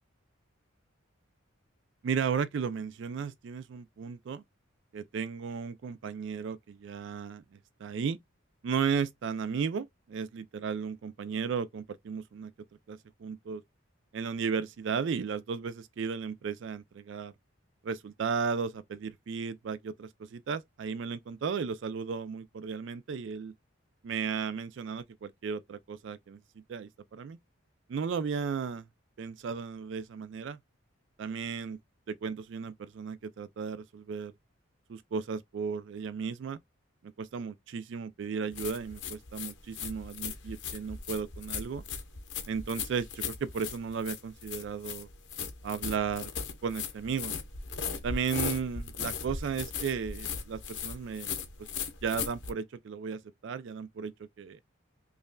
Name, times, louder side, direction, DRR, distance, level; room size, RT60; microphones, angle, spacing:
voice 1, 2.0-4.4 4.9-7.4 7.8-8.2 8.6-12.5 12.9-13.6 14.1-17.3 17.8-23.5 24.0-26.4 26.7-27.4 27.9-28.8 29.2-30.6 31.2-31.8 32.1-34.3 34.9-36.6 37.2-41.8 42.5-45.1 45.6-46.3 46.6-47.3 48.0-51.3 52.0-54.6, right 6 dB, 55° right, 0.3 m, -35 dB
sound 1, 38.5-52.5, left 6 dB, 55° left, 0.9 m, -38 dB
5.3 x 2.3 x 2.2 m
head